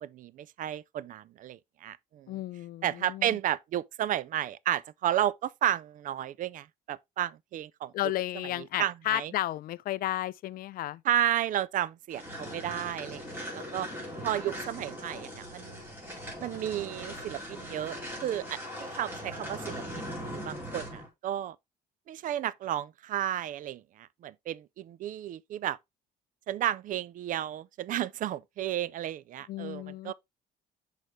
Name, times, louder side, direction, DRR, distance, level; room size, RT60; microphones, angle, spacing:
voice 1, 0.0-2.4 2.8-7.9 8.6-9.3 11.0-13.9 14.2-15.8 16.4-21.6 22.1-25.8 26.5-30.1, right 12 dB, 50° right, 0.4 m, -33 dB
voice 2, 2.3-3.3 7.9-11.0 29.5-30.1, left 15 dB, 60° left, 0.4 m, -33 dB
sound 1, 12.1-21.1, equal, 10° right, 3.7 m, -40 dB
6.2 x 5.1 x 3.1 m
cardioid pair, 110°, 17 cm